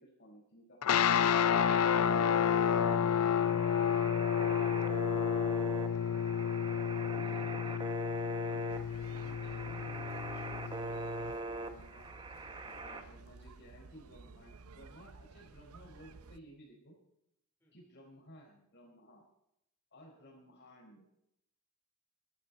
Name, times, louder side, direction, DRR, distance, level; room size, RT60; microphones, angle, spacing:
voice 1, 0.0-1.5 7.1-12.1 12.6-16.9 17.7-19.2 19.9-21.0, equal, 50° left, 0 dB, 4.6 m, -57 dB
sound 1, 0.8-11.3, left 8 dB, 75° left, 0.4 m, -30 dB
sound 2, 0.9-13.0, right 2 dB, 20° right, 1.0 m, -42 dB
voice 2, 8.5-8.6 17.6-17.7 20.2-20.3, left 1 dB, 10° left, -3 dB, 4.0 m, -62 dB
sound 3, 8.7-16.4, right 3 dB, 75° right, 0.7 m, -55 dB
20.5 x 12.0 x 4.2 m, 0.80 s
head